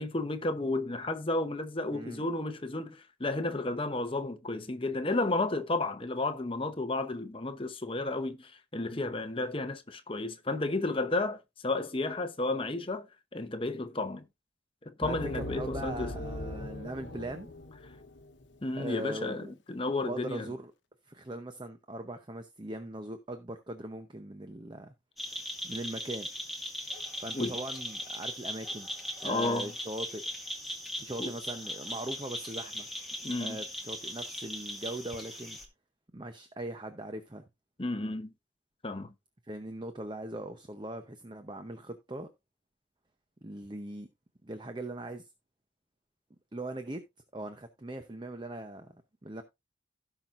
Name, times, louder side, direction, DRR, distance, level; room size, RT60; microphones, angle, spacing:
voice 1, 0.0-13.1 13.3-14.2 14.8-16.2 18.6-20.5 27.3-27.6 29.2-29.7 31.2-31.3 33.2-33.6 37.8-38.3 38.8-39.1, left 2 dB, 25° left, 0.8 m, -32 dB
voice 2, 1.9-2.2 15.0-17.5 18.8-19.5 20.0-20.7 21.1-24.9 25.6-26.3 27.2-28.9 29.2-30.2 31.0-32.9 33.4-35.6 36.1-37.4 39.5-42.3 43.4-44.1 44.4-45.3 46.5-47.0 47.3-49.4, right 1 dB, 25° right, 0.7 m, -40 dB
sound 1, 15.0-18.4, left 1 dB, 70° left, 1.0 m, -40 dB
sound 2, 25.2-35.7, equal, ahead, 1.8 m, -39 dB
16.5 x 5.8 x 2.5 m
head